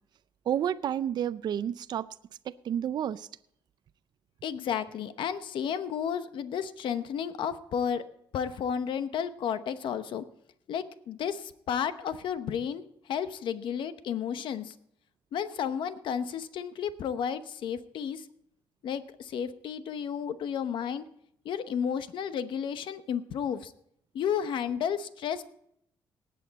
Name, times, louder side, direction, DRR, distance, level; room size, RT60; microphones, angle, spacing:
voice 1, 0.5-2.1 2.5-3.3, right 10 dB, 60° right, 13 dB, 0.4 m, -30 dB
voice 2, 4.4-8.0 8.3-10.2 10.7-12.8 13.1-14.7 15.3-18.3 18.8-21.0 21.4-23.7 24.1-25.4, left 8 dB, 75° left, 11 dB, 0.9 m, -32 dB
18.5 x 8.5 x 4.1 m, 0.70 s
cardioid pair, 130°, 8 cm